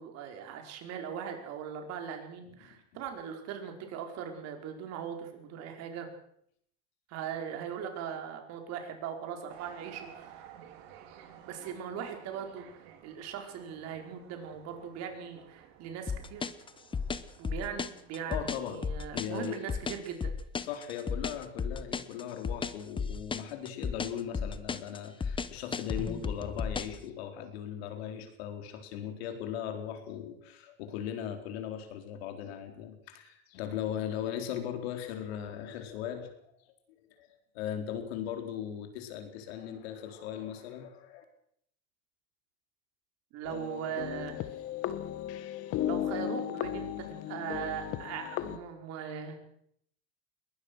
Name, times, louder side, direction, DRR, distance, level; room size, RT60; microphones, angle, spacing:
voice 1, 0.0-6.1 7.1-10.5 11.4-16.5 17.4-20.3 43.3-44.4 45.8-49.3, right 8 dB, 55° right, 4 dB, 5.0 m, -40 dB
sound 1, 9.5-18.6, right 9 dB, 80° right, 3.2 m, -54 dB
sound 2, 16.1-27.0, left 5 dB, 15° left, 1.1 m, -34 dB
voice 2, 18.3-18.8 19.1-19.6 20.6-36.3 36.6-36.7 37.2-41.2, left 9 dB, 80° left, 6 dB, 4.2 m, -38 dB
sound 3, 43.4-48.6, left 11 dB, 50° left, 1.7 m, -35 dB
22.0 x 19.5 x 6.4 m, 0.71 s
supercardioid pair, 125°, 31 cm